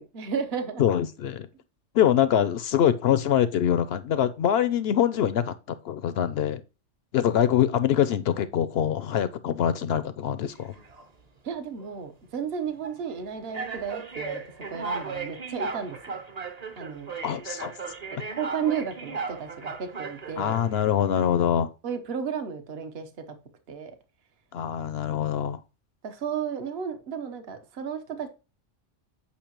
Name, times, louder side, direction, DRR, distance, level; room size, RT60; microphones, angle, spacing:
voice 1, 0.0-0.8 11.4-14.4 14.7-16.0 16.8-17.1 18.1-20.5 21.1-21.5 21.8-23.3 23.7-23.9 26.0-28.3, right 7 dB, 55° right, 1.2 m, -33 dB
voice 2, 0.8-1.5 1.9-6.6 7.1-10.7 17.2-17.7 20.4-21.7 24.5-25.6, left 9 dB, 65° left, 0.7 m, -24 dB
sound 1, 10.5-11.1 11.8-12.0 12.8-13.0 13.5-20.8, right 4 dB, 35° right, 0.9 m, -36 dB
8.5 x 5.5 x 3.0 m
omnidirectional pair, 1.3 m